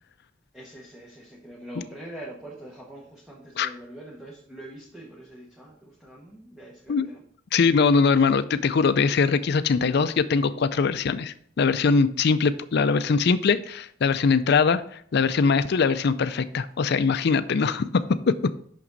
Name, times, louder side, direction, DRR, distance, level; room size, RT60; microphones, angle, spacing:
voice 1, 0.5-7.2, right 1 dB, 5° right, -4 dB, 1.1 m, -43 dB
voice 2, 7.5-17.9 18.3-18.5, left 5 dB, 60° left, 13 dB, 0.4 m, -22 dB
6.0 x 6.0 x 4.0 m, 0.62 s
head